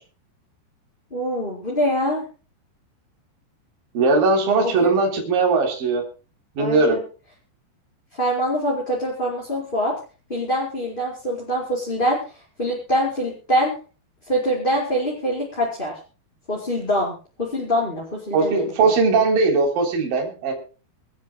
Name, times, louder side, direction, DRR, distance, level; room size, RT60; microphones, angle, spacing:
voice 1, 1.1-2.3 4.6-4.9 6.6-7.0 8.1-9.9 10.3-12.2 12.6-13.7 14.3-15.9 16.5-18.9, equal, 10° left, -3 dB, 4.5 m, -24 dB
voice 2, 3.9-6.0 6.6-7.0 18.3-20.5, right 3 dB, 55° right, 1 dB, 5.2 m, -19 dB
25.5 x 14.0 x 2.3 m, 0.35 s
omnidirectional pair, 4.9 m